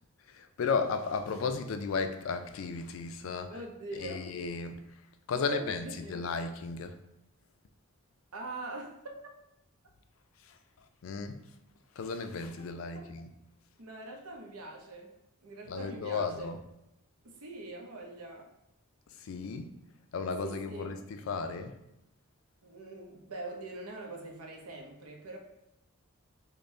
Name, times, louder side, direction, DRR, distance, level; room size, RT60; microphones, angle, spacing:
voice 1, 0.3-3.6 4.0-4.9 5.3-7.0 10.5-10.6 11.0-11.4 12.0-13.3 15.7-16.6 19.2-19.8 20.1-21.8, left 4 dB, 65° left, 8 dB, 0.4 m, -34 dB
voice 2, 3.5-4.3 5.3-6.2 8.3-9.0 12.6-12.7 12.9-13.1 13.8-15.2 15.4-16.5 17.2-18.5 20.4-21.0 22.6-25.4, right 2 dB, 85° right, 1 dB, 0.7 m, -43 dB
5.1 x 2.1 x 2.6 m, 0.88 s
head